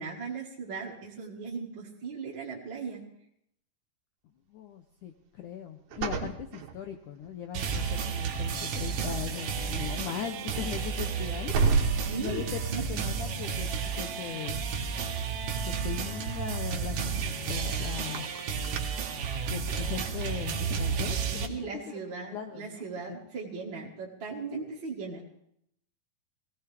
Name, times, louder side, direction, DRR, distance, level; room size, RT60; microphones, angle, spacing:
voice 1, 0.0-3.0 12.0-12.9 21.3-25.3, right 5 dB, 40° right, -4 dB, 1.9 m, -38 dB
voice 2, 4.5-11.5 12.2-14.6 15.6-18.3 19.5-22.0 22.3-23.3, left 9 dB, 80° left, 5 dB, 1.8 m, -39 dB
sound 1, 5.9-7.4 8.0-8.2 8.5-18.8, right 5 dB, 65° right, 2.1 m, -35 dB
sound 2, 7.5-21.5, right 6 dB, 90° right, 1.3 m, -32 dB
19.0 x 17.0 x 3.4 m, 0.74 s
omnidirectional pair, 4.5 m